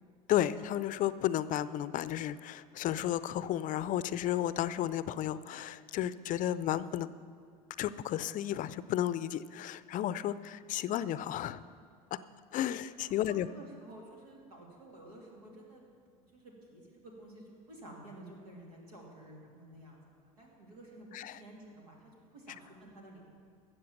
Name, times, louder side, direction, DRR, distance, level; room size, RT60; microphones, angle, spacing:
voice 1, 0.3-7.1 7.8-11.6 12.5-13.5 21.1-21.4, left 12 dB, 45° left, 16 dB, 0.5 m, -33 dB
voice 2, 13.2-15.9 16.3-23.3, right 1 dB, 85° right, -1 dB, 2.9 m, -52 dB
13.5 x 7.8 x 7.2 m, 2.2 s
hypercardioid pair, 80°, 19 cm